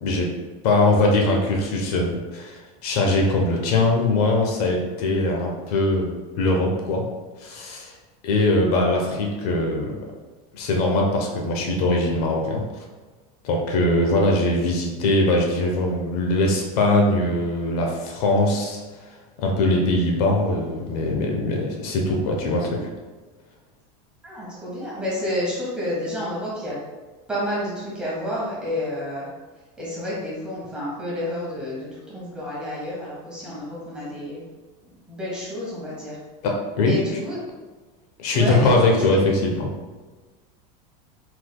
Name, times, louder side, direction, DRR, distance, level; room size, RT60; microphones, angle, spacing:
voice 1, 0.6-6.1 6.4-7.0 7.4-7.9 8.2-10.0 10.5-12.6 13.4-18.8 19.4-22.9 36.4-36.9 38.2-39.7, left 2 dB, 70° left, 1 dB, 0.8 m, -21 dB
voice 2, 24.2-26.8 27.3-29.3 29.8-34.4 35.1-36.2 36.8-37.4 38.3-39.2, left 1 dB, 5° right, -7 dB, 1.2 m, -30 dB
4.7 x 4.0 x 2.2 m, 1.3 s
supercardioid pair, 165°, 20 cm